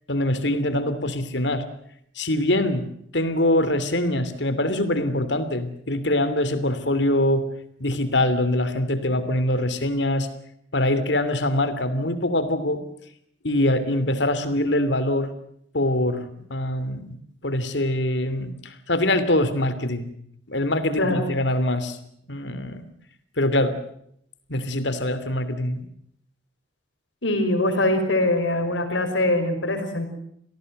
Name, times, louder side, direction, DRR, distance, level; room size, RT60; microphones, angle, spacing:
voice 1, 0.1-1.7 2.2-2.9 3.1-7.5 7.8-10.3 10.7-12.8 13.4-15.3 15.7-17.1 17.4-20.1 20.5-22.0 22.3-22.9 23.4-23.8 24.5-25.8, left 1 dB, 70° left, 12 dB, 3.0 m, -23 dB
voice 2, 27.2-30.1, left 1 dB, 85° left, 6 dB, 5.7 m, -22 dB
26.5 x 18.0 x 7.9 m, 0.69 s
head